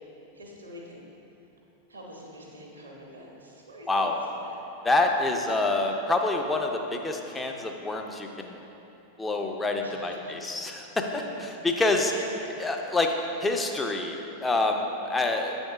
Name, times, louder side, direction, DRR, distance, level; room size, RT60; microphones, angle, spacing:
voice 1, 0.3-1.1 1.9-4.5 9.8-10.3 11.1-11.4 12.1-12.5, equal, 70° right, -2 dB, 0.9 m, -44 dB
voice 2, 4.8-8.6 9.2-12.1 12.6-13.1 13.4-15.7, left 2 dB, 10° left, 3 dB, 0.5 m, -27 dB
7.6 x 3.6 x 5.1 m, 3.0 s
figure-of-eight pair, 90°, 0 cm